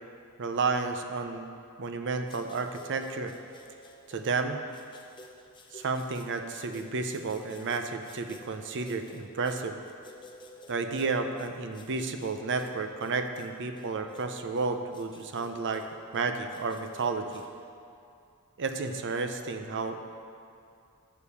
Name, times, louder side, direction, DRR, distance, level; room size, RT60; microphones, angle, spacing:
voice 1, 0.4-1.5 1.8-3.3 4.1-4.6 5.7-9.8 10.7-15.9 16.1-17.4 18.6-20.0, right 4 dB, 55° right, 7 dB, 0.6 m, -32 dB
sound 1, 2.3-17.5, left 1 dB, 20° left, 0.7 m, -52 dB
7.1 x 6.5 x 6.9 m, 2.5 s
head